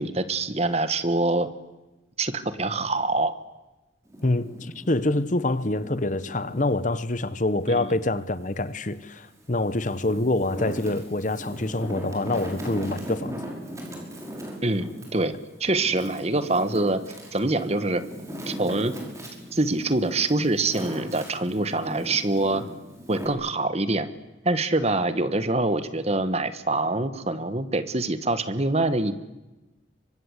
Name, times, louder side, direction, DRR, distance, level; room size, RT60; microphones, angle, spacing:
voice 1, 0.0-1.5 2.2-3.3 7.7-7.9 14.6-15.3 15.6-17.0 17.3-18.0 18.5-18.9 19.5-22.6 23.1-24.1 24.4-29.1, right 2 dB, 35° right, 1.4 m, -25 dB
Wind, 4.0-6.9 7.4-8.7 9.3-23.3, equal, 15° right, 5.6 m, -39 dB
voice 2, 4.2-13.4, left 2 dB, 40° left, 1.0 m, -26 dB
29.0 x 24.5 x 8.2 m
head